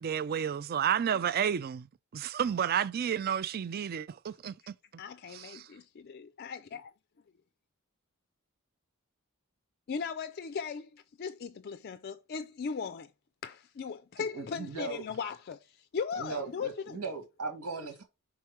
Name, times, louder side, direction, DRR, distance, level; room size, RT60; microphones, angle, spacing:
voice 1, 0.0-1.9 2.1-4.5 5.3-5.7, right 8 dB, 45° right, 0.3 m, -31 dB
voice 2, 5.0-6.9 9.9-13.1 13.4-17.0, left 6 dB, 45° left, 0.4 m, -38 dB
voice 3, 14.2-15.0 16.2-18.0, right 4 dB, 85° right, 2.2 m, -38 dB
5.8 x 3.7 x 4.6 m
head